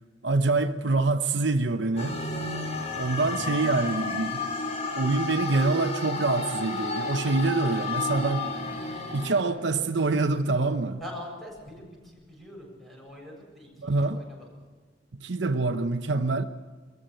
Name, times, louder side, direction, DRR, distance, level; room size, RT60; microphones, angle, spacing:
voice 1, 0.2-2.2 3.0-4.5 5.0-8.6 9.1-11.0 13.8-14.3 15.2-16.4, right 3 dB, 70° right, 0.8 m, -25 dB
sound 1, 2.0-9.4, left 3 dB, 40° left, 3.4 m, -32 dB
voice 2, 2.9-3.2 11.0-14.5, left 1 dB, ahead, 7.6 m, -44 dB
23.0 x 14.5 x 9.0 m
head